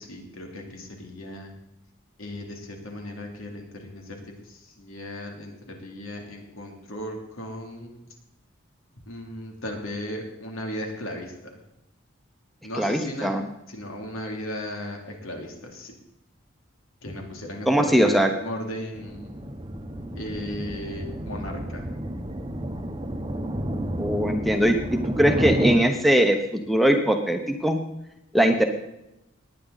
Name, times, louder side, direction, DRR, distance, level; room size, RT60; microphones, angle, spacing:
voice 1, 0.0-1.5 2.2-4.2 4.4-8.1 9.1-11.6 12.6-13.3 13.7-15.9 17.0-19.3 20.1-21.8, left 1 dB, 85° left, 1 dB, 3.1 m, -36 dB
voice 2, 12.8-13.4 17.7-18.3 24.0-24.8 25.2-27.8 28.3-28.7, equal, ahead, 4 dB, 1.0 m, -20 dB
sound 1, 18.9-25.8, right 1 dB, 20° right, 1.0 m, -30 dB
19.5 x 9.5 x 4.1 m, 0.87 s
head